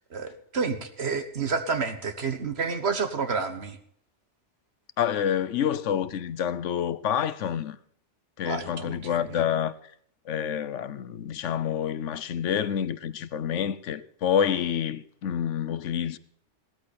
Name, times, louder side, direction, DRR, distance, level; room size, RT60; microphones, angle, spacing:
voice 1, 0.1-3.8 8.4-9.4, right 5 dB, 60° right, 1.7 m, -30 dB
voice 2, 5.0-7.8 8.4-9.7 10.3-16.2, left 9 dB, 90° left, 1.1 m, -28 dB
17.0 x 13.5 x 4.3 m
omnidirectional pair, 1.2 m